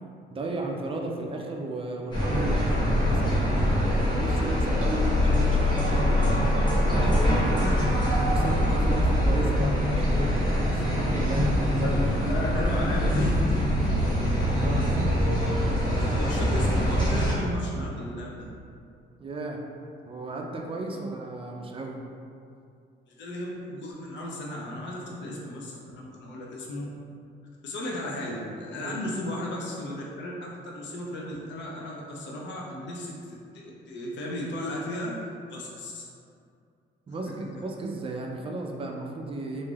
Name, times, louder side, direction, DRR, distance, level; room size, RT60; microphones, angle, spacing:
voice 1, 0.3-3.7 4.0-6.5 6.8-7.8 8.1-12.0 14.5-14.9 19.2-19.6 20.0-22.0 28.8-29.1 37.1-39.7, right 2 dB, 30° right, 1 dB, 0.3 m, -34 dB
sound 1, 2.1-17.3, equal, 20° left, 0.9 m, -24 dB
voice 2, 12.3-13.4 16.1-18.5 20.9-21.0 23.1-26.9 27.6-36.0 37.2-37.3, left 1 dB, 65° left, -3 dB, 0.6 m, -35 dB
3.2 x 2.6 x 2.3 m, 2.4 s
cardioid pair, 120°, 20 cm